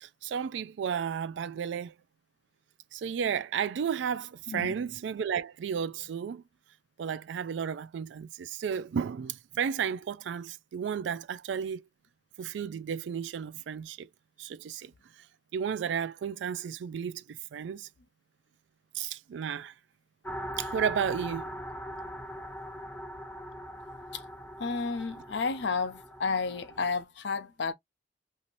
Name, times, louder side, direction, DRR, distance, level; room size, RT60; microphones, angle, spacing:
voice 1, 0.0-1.9 2.9-6.4 7.0-11.8 12.4-14.1 14.4-14.9 15.5-17.9 18.9-19.7 20.6-21.5, right 7 dB, 85° right, 0.3 m, -33 dB
sound 1, 20.2-27.0, equal, 10° left, 0.6 m, -41 dB
voice 2, 24.6-27.7, left 4 dB, 75° left, 0.6 m, -31 dB
2.7 x 2.5 x 3.0 m
head